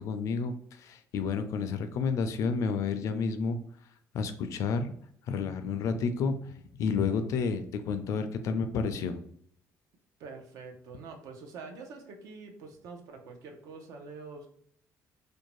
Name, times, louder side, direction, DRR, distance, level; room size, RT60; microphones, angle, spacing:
voice 1, 0.0-3.6 4.1-4.9 5.3-9.2, left 5 dB, 60° left, 8 dB, 0.4 m, -30 dB
voice 2, 10.2-14.5, right 4 dB, 80° right, 3 dB, 0.6 m, -45 dB
2.6 x 2.2 x 3.0 m, 0.66 s
cardioid pair, 150°, 6 cm